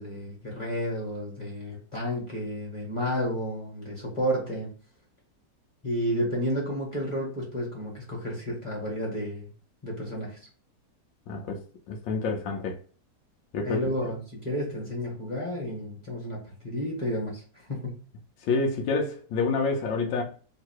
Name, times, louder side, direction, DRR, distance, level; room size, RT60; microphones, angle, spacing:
voice 1, 0.0-4.7 5.8-9.5 9.8-10.4 13.6-18.0, equal, 15° left, 1.7 m, -31 dB
voice 2, 11.3-11.6 11.9-12.7 13.5-13.8 18.4-20.2, left 4 dB, 85° left, 1.4 m, -28 dB
3.3 x 2.9 x 4.5 m
omnidirectional pair, 2.0 m